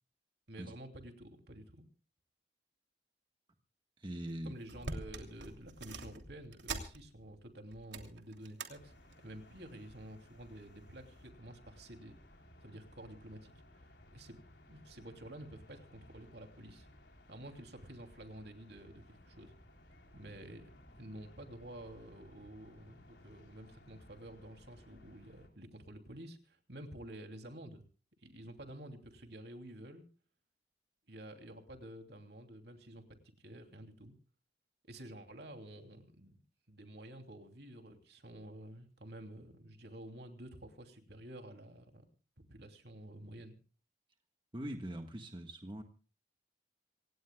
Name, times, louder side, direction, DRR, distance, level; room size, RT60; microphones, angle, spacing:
voice 1, 0.5-1.9 4.4-12.1 12.6-13.5 13.8-14.4 14.7-16.9 17.3-19.5 20.1-20.7 21.0-27.8 28.2-30.1 31.1-34.1 34.9-36.4 36.7-42.0 42.5-43.6, right 1 dB, 65° right, 5 dB, 3.0 m, -50 dB
voice 2, 4.0-4.5 44.5-45.8, right 1 dB, 25° right, 4 dB, 1.5 m, -42 dB
sound 1, 4.3-4.4 4.6-7.4 7.7-8.7 9.1-9.4 10.2-10.7 11.2-11.3, right 3 dB, 85° right, 3.0 m, -45 dB
sound 2, 8.7-25.5, left 1 dB, 80° left, 3.7 m, -60 dB
26.5 x 18.0 x 2.3 m, 0.38 s
head